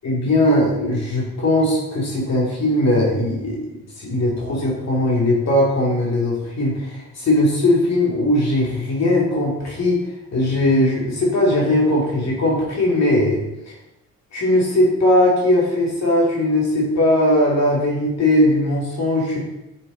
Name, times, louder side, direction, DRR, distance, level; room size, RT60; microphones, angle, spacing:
voice 1, 0.0-13.4 13.7-13.8 14.3-19.4, left 1 dB, 60° left, -3 dB, 2.3 m, -19 dB
9.3 x 6.8 x 3.8 m, 0.90 s
cardioid pair, 90°, 30 cm